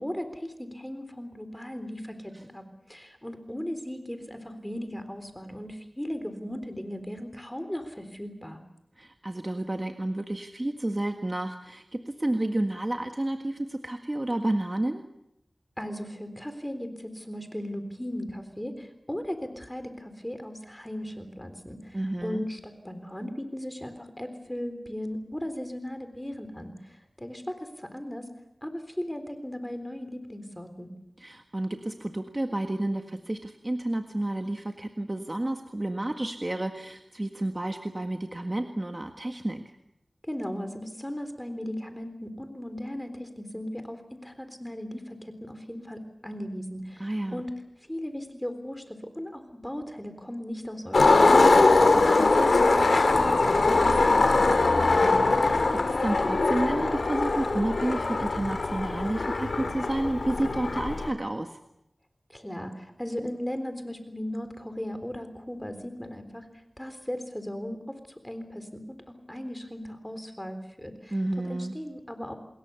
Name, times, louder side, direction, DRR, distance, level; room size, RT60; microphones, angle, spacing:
voice 1, 0.0-8.6 15.8-28.3 28.6-30.9 40.2-47.5 47.9-55.2 62.3-66.5 66.8-71.2 71.4-72.3, equal, 10° left, 9 dB, 3.8 m, -37 dB
voice 2, 9.0-15.0 21.9-22.5 31.2-39.6 47.0-47.4 55.4-61.6 71.1-71.7, right 1 dB, 35° right, 5 dB, 1.7 m, -30 dB
Skateboard, 50.9-61.1, left 3 dB, 85° left, 2.4 m, -22 dB
28.0 x 21.0 x 7.1 m, 0.82 s
wide cardioid pair, 50°, 0 cm